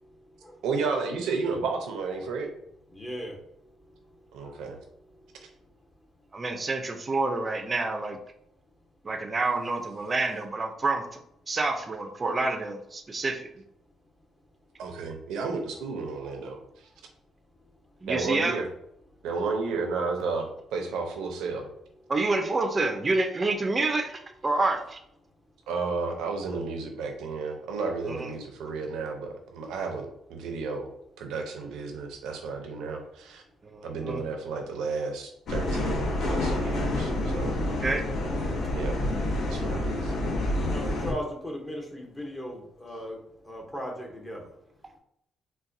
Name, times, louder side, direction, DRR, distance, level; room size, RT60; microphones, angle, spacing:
voice 1, 0.6-2.5 4.3-4.8 14.8-16.6 18.1-18.7 19.2-21.7 25.7-30.9 31.2-33.4 33.8-37.6 38.7-39.0 39.5-40.1, right 4 dB, 90° right, 3 dB, 0.6 m, -32 dB
voice 2, 2.9-3.3 4.4-4.5 16.2-16.3 40.6-43.2 43.5-44.4, equal, 20° left, 0 dB, 0.8 m, -37 dB
voice 3, 6.3-8.2 9.0-11.0 11.5-13.4 18.0-18.6 22.1-25.0 28.1-28.3 33.6-34.2 37.8-38.0, right 3 dB, 30° right, 5 dB, 0.5 m, -28 dB
sound 1, 35.5-41.1, left 1 dB, 65° left, 0.8 m, -28 dB
4.0 x 2.2 x 2.6 m, 0.75 s
cardioid pair, 90°, 0 cm